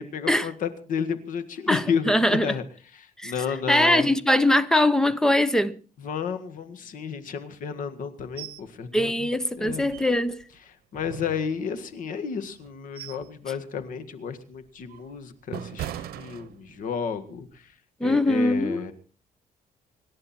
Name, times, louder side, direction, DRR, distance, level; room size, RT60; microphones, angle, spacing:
voice 1, 0.0-2.6 2.9-4.1 6.0-9.3 9.6-9.9 10.9-17.7 18.0-18.9, left 6 dB, 60° left, 1.9 m, -32 dB
voice 2, 1.7-2.5 3.2-3.3 3.7-5.7 8.9-10.4 18.0-18.8, left 1 dB, 5° left, 0.8 m, -22 dB
sound 1, 8.4-8.7 9.0-9.1 9.6-10.4 10.9-12.0 12.5-13.4 13.7-14.0 14.5-17.0 17.4-17.6, right 12 dB, 85° right, 0.9 m, -40 dB
25.5 x 11.5 x 4.4 m
cardioid pair, 170°, 16 cm